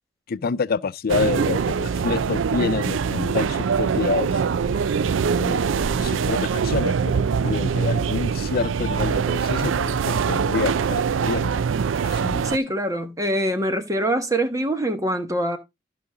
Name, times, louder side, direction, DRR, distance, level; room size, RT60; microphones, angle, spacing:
voice 1, 0.3-4.4 5.4-11.6 12.0-12.5, left 5 dB, 50° left, 0.4 m, -28 dB
sound 1, 1.1-12.6, right 6 dB, 85° right, 0.4 m, -23 dB
voice 2, 12.4-15.6, right 1 dB, 20° right, 1.4 m, -24 dB
14.0 x 4.9 x 3.8 m
head